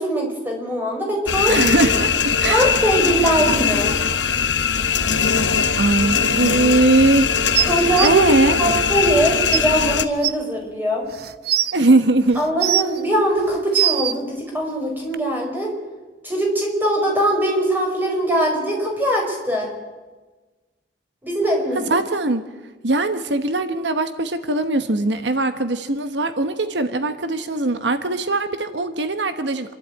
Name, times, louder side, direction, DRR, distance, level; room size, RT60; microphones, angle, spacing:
voice 1, 0.0-1.6 2.5-3.9 7.6-8.2 8.6-11.1 12.3-15.7 16.2-19.7 21.2-21.9, right 1 dB, 10° right, 0 dB, 5.2 m, -21 dB
sound 1, 1.3-10.0, left 6 dB, 80° left, 1.0 m, -20 dB
voice 2, 1.5-2.1 2.4-2.6 5.8-7.3 8.0-8.6 11.7-12.4 21.7-22.4 22.8-29.7, right 2 dB, 80° right, 10 dB, 1.2 m, -20 dB
sound 2, 7.5-8.1 9.1-9.2 9.5-9.6 10.2-10.3 11.1-11.7 12.4-13.0 13.5-14.1 15.1-15.2, right 12 dB, 60° right, 0.7 m, -20 dB
27.0 x 12.0 x 8.9 m, 1.3 s
head